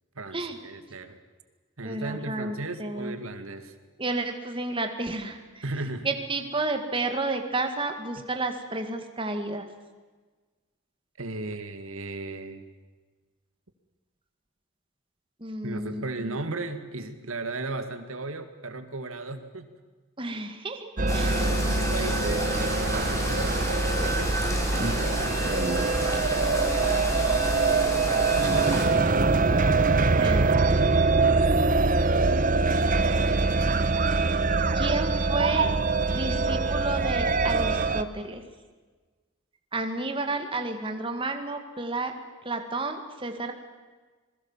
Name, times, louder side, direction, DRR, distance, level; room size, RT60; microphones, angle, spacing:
voice 1, 0.2-1.2 1.8-3.7 5.6-6.1 11.2-12.7 15.6-19.7 21.6-24.4 24.9-25.5 26.0-26.5 27.9-29.8 31.4-31.5 32.8-34.1, right 2 dB, 75° right, 8 dB, 2.2 m, -37 dB
voice 2, 1.8-3.2 4.0-5.6 6.0-9.7 15.4-16.4 20.2-21.5 30.2-30.6 34.8-35.7 36.1-38.4 39.7-42.1 42.4-43.5, right 2 dB, 25° right, 5 dB, 2.0 m, -31 dB
sound 1, 21.0-38.0, right 3 dB, 40° right, 1.0 m, -24 dB
sound 2, 21.1-28.9, left 1 dB, 15° left, 4.6 m, -32 dB
27.0 x 21.5 x 7.4 m, 1.4 s
head